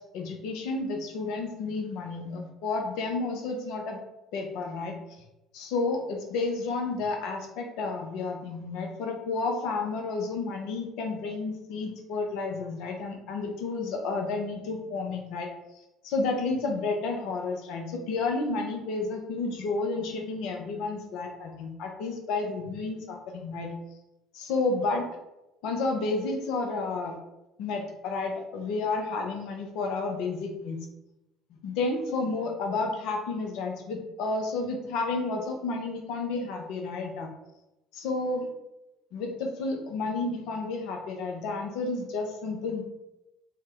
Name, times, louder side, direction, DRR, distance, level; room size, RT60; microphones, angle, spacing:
voice 1, 0.0-4.0 4.3-4.9 5.5-15.5 16.0-23.7 24.3-25.1 25.6-27.2 27.6-30.8 31.6-37.3 37.9-38.5 39.1-42.8, left 3 dB, 60° left, 3 dB, 0.5 m, -31 dB
2.6 x 2.1 x 3.3 m, 0.93 s
figure-of-eight pair, 55°, 0 cm